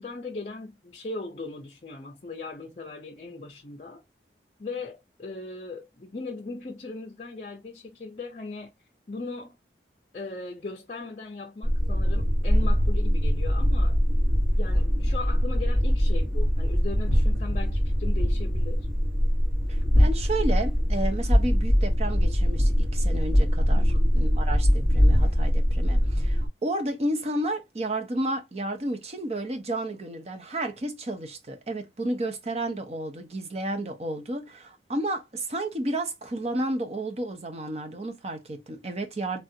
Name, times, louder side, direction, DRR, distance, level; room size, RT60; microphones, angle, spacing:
voice 1, 0.0-4.0 4.6-8.7 9.1-9.5 10.1-14.0 14.5-18.9 23.7-24.1, left 3 dB, 40° left, 0.6 m, -38 dB
sound 1, 11.6-26.5, equal, 60° right, 1.3 m, -22 dB
voice 2, 19.7-23.8 24.1-39.4, right 1 dB, 35° right, 0.6 m, -32 dB
3.3 x 2.5 x 2.7 m
head